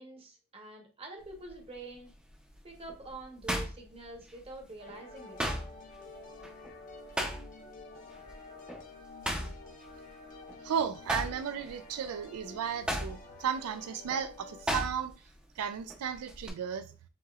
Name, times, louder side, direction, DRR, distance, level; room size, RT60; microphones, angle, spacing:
voice 1, 0.0-2.1 2.6-5.4, right 2 dB, 25° right, 0.9 m, -46 dB
sound 1, 1.2-1.5 2.1-4.6 4.9-7.8 8.1-8.3 8.7-10.6 10.9-15.3 15.6-16.5, equal, 5° right, 0.6 m, -36 dB
sound 2, 4.8-14.7, left 3 dB, 35° left, 0.8 m, -50 dB
voice 2, 10.6-15.1 15.6-16.9, right 7 dB, 80° right, 0.4 m, -34 dB
7.6 x 2.8 x 2.3 m
head